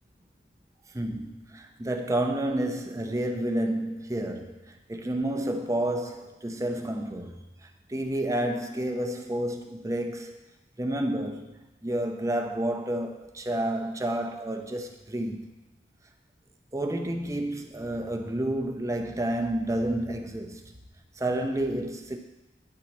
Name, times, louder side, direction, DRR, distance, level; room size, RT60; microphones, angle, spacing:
voice 1, 0.9-10.4 10.8-15.5 16.7-20.7 21.2-22.2, right 1 dB, 20° right, 0.6 m, -30 dB
9.6 x 4.0 x 6.0 m
head